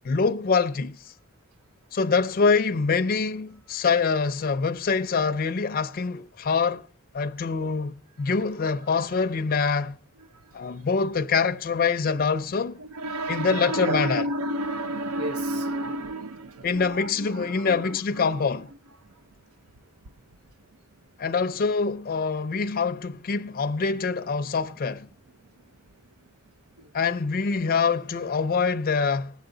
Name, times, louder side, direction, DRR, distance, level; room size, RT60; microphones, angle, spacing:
voice 1, 0.0-1.0 1.9-6.9 7.1-10.0 10.5-12.8 13.3-14.2 16.6-18.7 21.2-25.1 26.9-29.3, left 5 dB, 45° left, 0.4 m, -25 dB
voice 2, 12.8-18.3 19.0-19.1 26.8-26.9, right 1 dB, 90° right, 0.5 m, -31 dB
19.0 x 8.4 x 3.8 m
head